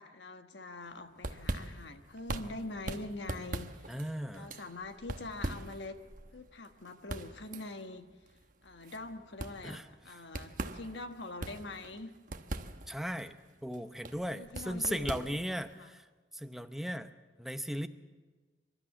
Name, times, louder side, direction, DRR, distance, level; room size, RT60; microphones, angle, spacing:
voice 1, 0.0-4.0 4.3-5.9 6.3-8.0 8.6-12.1 14.3-15.4 15.7-16.0, left 2 dB, 65° left, 7 dB, 1.3 m, -44 dB
sound 1, 0.9-15.8, right 2 dB, 45° right, 1.1 m, -42 dB
voice 2, 3.9-4.5 9.6-9.9 12.9-13.4 13.6-16.0 16.3-17.1 17.4-17.9, equal, ahead, 8 dB, 0.7 m, -37 dB
26.0 x 12.5 x 8.6 m, 1.4 s
head